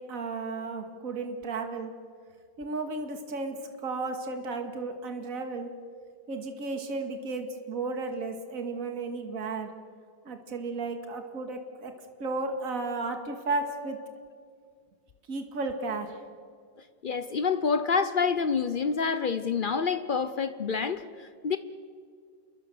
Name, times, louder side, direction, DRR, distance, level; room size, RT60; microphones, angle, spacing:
voice 1, 0.0-1.9 2.6-5.7 6.3-9.7 10.2-11.9 12.2-14.0 15.3-16.2, right 3 dB, 45° right, 6 dB, 2.4 m, -34 dB
voice 2, 17.0-21.6, left 5 dB, 85° left, 11 dB, 0.4 m, -27 dB
28.5 x 22.5 x 6.9 m, 2.1 s
omnidirectional pair, 2.1 m